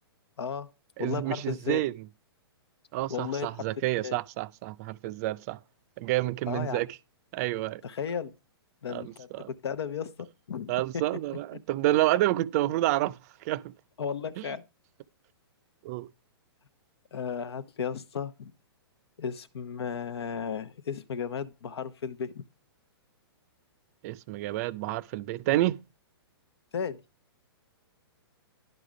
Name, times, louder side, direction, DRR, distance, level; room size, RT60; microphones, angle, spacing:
voice 1, 0.4-0.7 1.0-1.8 3.1-3.6 4.0-4.2 6.5-6.8 7.8-8.3 8.8-11.0 14.0-14.6 17.1-18.5 19.2-22.4 26.7-27.0, left 7 dB, 75° left, 0.9 m, -34 dB
voice 2, 1.0-1.9 2.9-5.6 6.0-6.9 7.3-7.8 8.9-9.5 10.7-13.2 13.4-13.7 14.4-14.5 15.8-16.1 24.0-25.8, right 16 dB, 40° right, 0.4 m, -29 dB
11.0 x 5.0 x 4.9 m
hypercardioid pair, 135°, 13 cm